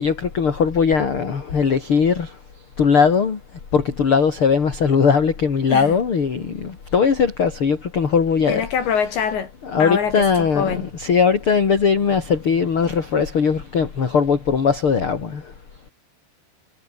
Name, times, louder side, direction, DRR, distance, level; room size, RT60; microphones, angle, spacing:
voice 1, 0.0-2.4 2.8-3.4 3.7-8.6 9.6-15.5, left 6 dB, 35° left, 2.6 m, -19 dB
voice 2, 5.7-6.0 8.5-9.5 9.8-10.9, left 7 dB, 65° left, 5.3 m, -24 dB
omnidirectional pair, 5.7 m